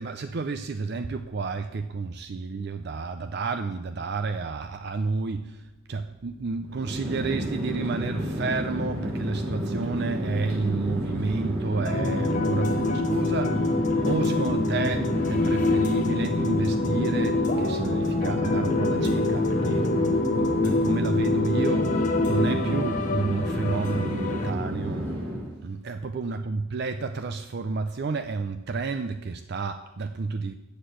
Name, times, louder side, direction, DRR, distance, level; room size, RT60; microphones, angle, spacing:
voice 1, 0.0-19.8 20.3-25.1 25.6-30.5, right 4 dB, 50° right, 8 dB, 0.4 m, -31 dB
Chatter / Fixed-wing aircraft airplane, 6.6-25.6, equal, 80° right, 3.0 m, -31 dB
sound 1, 11.8-24.5, left 2 dB, 35° left, 0.9 m, -26 dB
7.7 x 6.6 x 7.9 m, 1.1 s
head